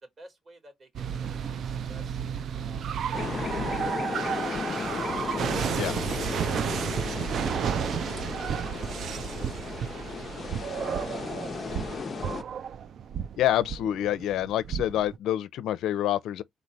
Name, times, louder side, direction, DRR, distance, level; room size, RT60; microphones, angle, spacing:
voice 1, 0.0-2.2 2.6-5.5 6.0-6.3 6.7-12.4, right 1 dB, 35° right, 3.1 m, -53 dB
sound 1, 0.9-15.2, right 8 dB, 65° right, 0.5 m, -32 dB
sound 2, 3.1-12.4, left 6 dB, 45° left, 0.6 m, -35 dB
voice 2, 13.4-16.4, left 12 dB, 80° left, 0.5 m, -27 dB
4.0 x 3.3 x 4.0 m
cardioid pair, 90°, 0 cm